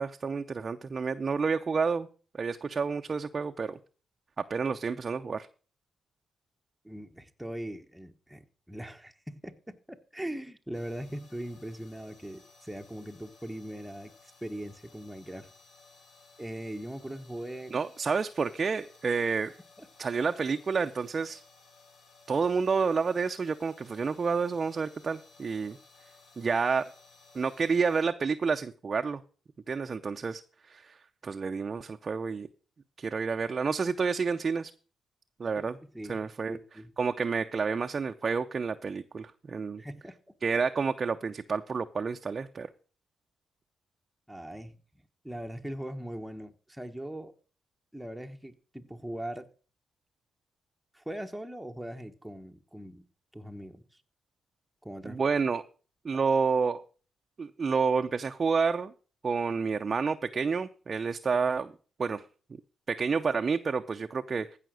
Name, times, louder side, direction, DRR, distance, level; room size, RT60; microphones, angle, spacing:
voice 1, 0.0-2.1 2.3-3.8 4.4-5.5 17.7-19.5 20.0-21.4 22.3-25.8 26.4-26.9 27.3-29.2 29.7-32.5 33.0-34.7 35.4-35.8 36.1-36.6 37.0-39.8 40.4-42.7 55.0-55.7 56.0-56.8 57.4-58.9 59.2-61.7 62.0-62.2 62.5-62.6 62.9-64.6, right 5 dB, 40° right, 0.6 m, -29 dB
voice 2, 6.8-15.5 16.4-17.7 19.8-19.9 35.6-35.7 35.9-36.9 39.8-40.2 44.3-44.8 45.2-47.3 47.9-49.5 50.9-53.0 53.3-54.0 54.8-55.2, right 1 dB, 5° right, 1.2 m, -40 dB
sound 1, 10.7-28.0, left 3 dB, 70° left, 3.4 m, -58 dB
15.5 x 5.8 x 6.4 m
cardioid pair, 80°, 0 cm